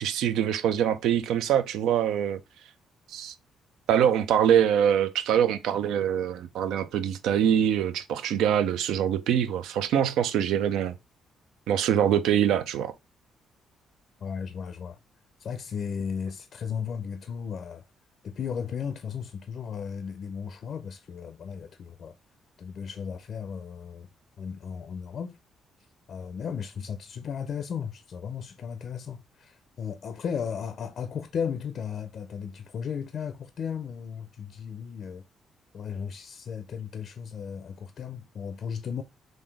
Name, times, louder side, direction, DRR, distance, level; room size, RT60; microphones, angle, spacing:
voice 1, 0.0-2.4 3.1-3.3 3.9-10.9 11.7-12.9, right 9 dB, 85° right, 0.4 m, -24 dB
voice 2, 14.2-15.0 15.4-17.8 18.2-22.1 22.6-24.1 24.4-25.4 26.1-35.2 35.7-39.0, left 7 dB, 60° left, 0.4 m, -35 dB
3.8 x 2.6 x 3.3 m
cardioid pair, 90°, 0 cm